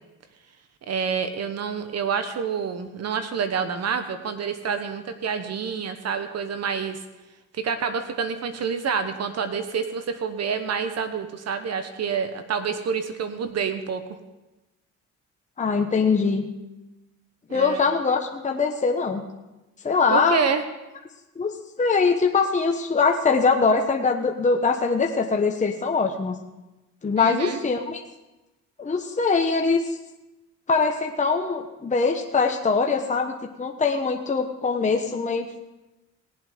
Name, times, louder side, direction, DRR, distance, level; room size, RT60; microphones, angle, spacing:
voice 1, 0.9-7.0 7.5-14.0 17.5-17.8 20.1-20.6 27.2-27.6, right 6 dB, 55° right, 9 dB, 1.0 m, -28 dB
voice 2, 15.6-16.5 17.5-19.2 19.8-20.4 21.4-26.4 27.0-28.0 28.8-30.0 30.7-35.6, left 4 dB, 25° left, 3 dB, 1.1 m, -22 dB
19.0 x 7.6 x 5.0 m, 1.0 s
cardioid pair, 90°, 30 cm